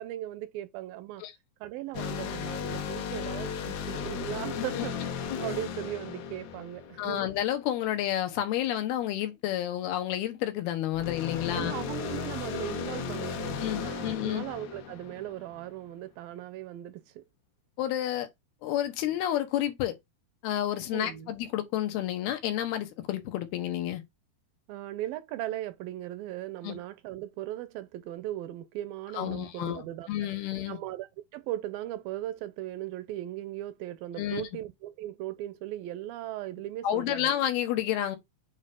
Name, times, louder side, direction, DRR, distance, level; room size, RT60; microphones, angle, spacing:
voice 1, 0.0-1.2 1.6-4.9 5.4-7.3 11.5-17.2 20.9-21.3 24.7-30.3 30.7-37.3, right 14 dB, 80° right, 2.2 m, -38 dB
sound 1, 1.9-7.4 10.9-15.7, left 6 dB, 70° left, 1.8 m, -36 dB
voice 2, 7.0-11.7 13.6-14.5 17.8-18.3 18.6-20.0 20.4-24.0 26.6-26.8 29.2-30.8 34.2-34.4 36.8-38.2, left 12 dB, 90° left, 3.2 m, -30 dB
7.9 x 2.8 x 5.1 m
omnidirectional pair, 4.4 m